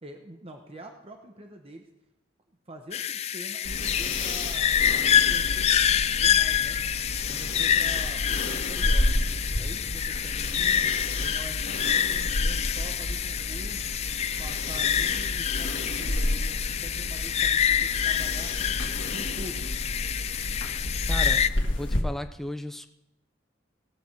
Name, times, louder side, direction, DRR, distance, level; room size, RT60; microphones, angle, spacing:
voice 1, 0.0-1.8 2.7-6.8 7.3-9.1 9.6-13.9 14.4-18.8 19.1-19.8, right 1 dB, 30° right, 4 dB, 1.0 m, -45 dB
sound 1, 2.9-21.5, left 9 dB, 35° left, 0.3 m, -27 dB
sound 2, 3.6-22.0, left 1 dB, 75° left, 1.6 m, -31 dB
voice 2, 21.1-22.9, left 1 dB, ahead, 8 dB, 0.6 m, -35 dB
18.0 x 7.1 x 4.6 m, 0.89 s
head